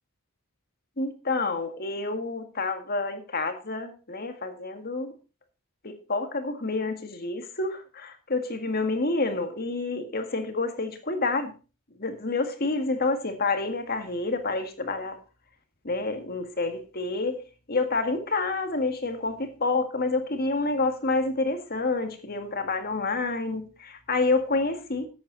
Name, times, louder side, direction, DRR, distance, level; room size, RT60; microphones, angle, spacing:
voice 1, 1.0-5.1 5.8-11.5 12.0-15.2 15.8-25.1, left 3 dB, 45° left, 1.9 m, -28 dB
14.0 x 8.4 x 4.0 m
head